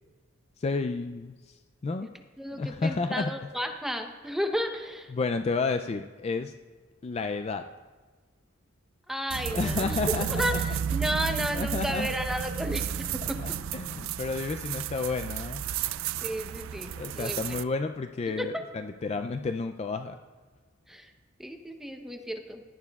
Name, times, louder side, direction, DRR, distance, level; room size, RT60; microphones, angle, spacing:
voice 1, 0.6-1.3 1.8-2.1 2.6-3.3 5.1-6.5 7.0-7.6 9.5-10.6 11.5-12.1 13.2-15.6 17.0-20.2, left 4 dB, 30° left, 8 dB, 0.3 m, -31 dB
voice 2, 2.4-5.1 9.1-10.0 10.3-13.4 16.2-17.6 18.3-18.6 20.9-21.1 21.4-22.6, equal, ahead, 5 dB, 0.8 m, -33 dB
sound 1, 9.3-17.6, right 9 dB, 85° right, 0.4 m, -32 dB
17.5 x 12.0 x 2.4 m, 1.3 s
head